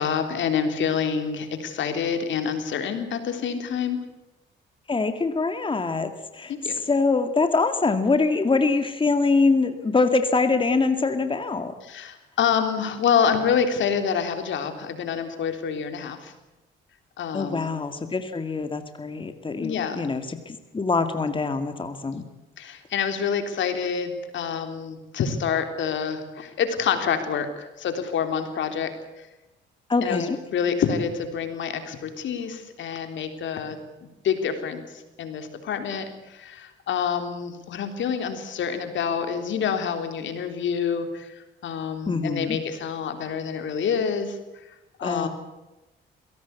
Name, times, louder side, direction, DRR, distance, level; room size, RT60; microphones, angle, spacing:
voice 1, 0.0-4.0 6.5-6.8 11.8-16.3 17.2-17.7 19.6-20.1 22.6-29.3 30.0-33.8 34.2-44.4 45.0-45.3, left 7 dB, 70° left, 7 dB, 3.6 m, -27 dB
voice 2, 4.9-6.5 6.9-11.7 17.3-22.3 29.9-30.4 42.1-42.6 45.0-45.3, left 3 dB, 25° left, 8 dB, 2.1 m, -24 dB
22.0 x 17.5 x 8.3 m, 1.0 s
cardioid pair, 90°, 20 cm